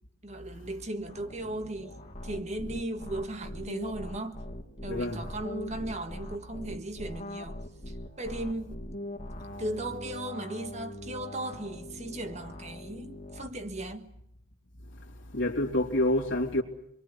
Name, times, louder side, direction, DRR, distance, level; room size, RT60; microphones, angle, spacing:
voice 1, 0.2-2.0 2.2-4.4 4.8-7.6 7.9-8.8 9.6-14.1, right 1 dB, 35° right, 1.6 m, -37 dB
sound 1, 1.1-13.5, left 1 dB, 35° left, 2.2 m, -42 dB
voice 2, 4.9-5.3 15.3-16.6, left 1 dB, 65° left, 2.9 m, -27 dB
27.5 x 23.0 x 8.5 m
head